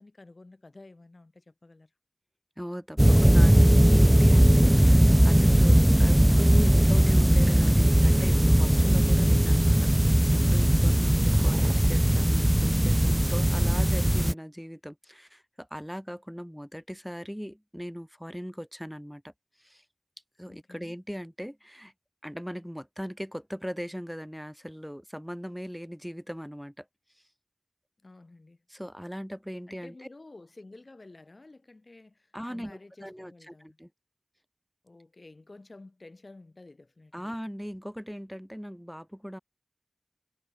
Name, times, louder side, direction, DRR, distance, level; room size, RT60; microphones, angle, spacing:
voice 1, 0.0-1.9 20.5-21.0 28.0-28.6 29.7-33.8 34.8-37.3, left 2 dB, 75° left, 5.6 m, -51 dB
voice 2, 2.6-19.3 19.6-19.9 20.4-21.9 22.2-26.9 27.1-27.3 28.7-30.1 32.3-33.9 37.1-39.4, equal, ahead, 2.0 m, -39 dB
sound 1, 3.0-14.3, right 1 dB, 15° right, 0.3 m, -19 dB
wide cardioid pair, 40°, 0 cm